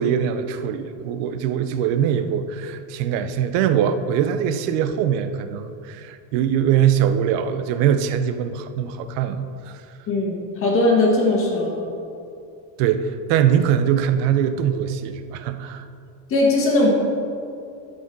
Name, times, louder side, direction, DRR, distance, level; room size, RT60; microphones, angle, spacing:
voice 1, 0.0-9.8 12.8-15.9, right 9 dB, 55° right, 9 dB, 0.7 m, -22 dB
voice 2, 10.1-11.7 16.3-16.9, left 2 dB, 25° left, -1 dB, 1.7 m, -19 dB
12.0 x 5.4 x 5.3 m, 2.5 s
cardioid pair, 165°, 47 cm